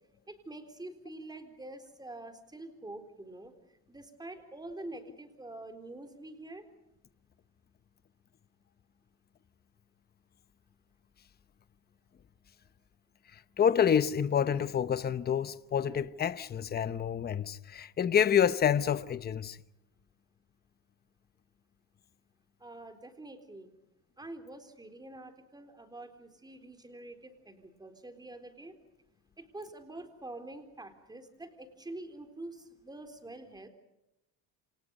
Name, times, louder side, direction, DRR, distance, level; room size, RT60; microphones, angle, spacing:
voice 1, 0.3-3.5 3.9-6.6 22.6-23.7 24.2-28.7 29.4-33.7, right 2 dB, 10° right, 3.9 m, -46 dB
voice 2, 13.6-19.6, left 8 dB, 25° left, 0.9 m, -28 dB
28.5 x 27.5 x 5.4 m
cardioid pair, 140°, 39 cm